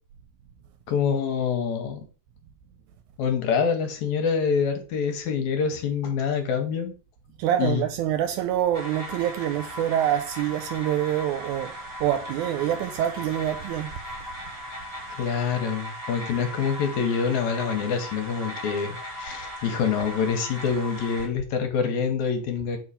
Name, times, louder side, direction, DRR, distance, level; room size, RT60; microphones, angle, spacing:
voice 1, 0.9-2.0 3.2-6.9 7.6-7.8 15.2-22.8, left 6 dB, 75° left, 2.3 m, -26 dB
voice 2, 7.4-11.7 12.0-13.9, right 11 dB, 80° right, 1.9 m, -26 dB
sound 1, 8.7-21.3, equal, 15° right, 1.2 m, -38 dB
4.7 x 3.9 x 5.5 m
omnidirectional pair, 3.5 m